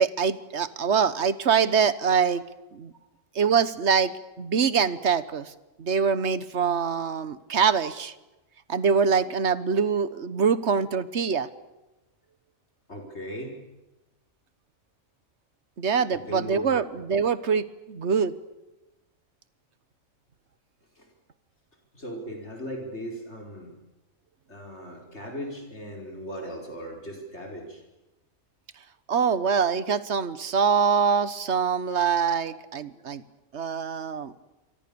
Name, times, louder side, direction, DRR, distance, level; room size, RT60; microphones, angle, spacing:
voice 1, 0.0-2.4 2.7-2.9 3.3-4.1 4.4-5.5 5.8-8.1 8.7-11.5 15.8-18.3 29.1-33.2 33.5-34.3, right 6 dB, 55° right, 15 dB, 1.5 m, -24 dB
voice 2, 12.9-13.6 16.1-16.9 21.0-21.1 21.9-23.7 24.5-27.8, equal, 55° left, 1 dB, 5.1 m, -38 dB
28.0 x 24.5 x 7.0 m, 1.0 s
omnidirectional pair, 1.4 m